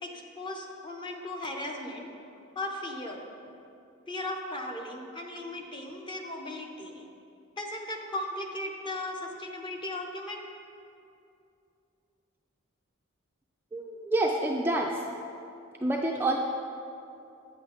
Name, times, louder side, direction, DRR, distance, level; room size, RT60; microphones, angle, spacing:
voice 1, 0.0-2.1 2.5-3.5 4.1-7.1 7.6-10.4, left 1 dB, 20° left, 2 dB, 0.7 m, -37 dB
voice 2, 13.7-15.1 15.8-16.4, right 2 dB, 10° right, 0 dB, 0.3 m, -28 dB
8.7 x 7.2 x 3.9 m, 2.7 s
head